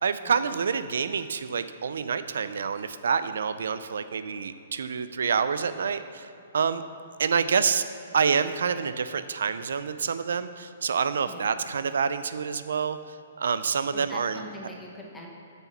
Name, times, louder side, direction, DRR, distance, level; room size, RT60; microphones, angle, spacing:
voice 1, 0.0-6.3 6.5-6.8 7.2-7.8 8.1-13.0 13.4-14.4, right 6 dB, 75° right, 12 dB, 0.4 m, -27 dB
voice 2, 13.9-15.3, left 1 dB, 5° left, -2 dB, 1.0 m, -42 dB
7.9 x 7.0 x 5.9 m, 2.8 s
hypercardioid pair, 170°, 0 cm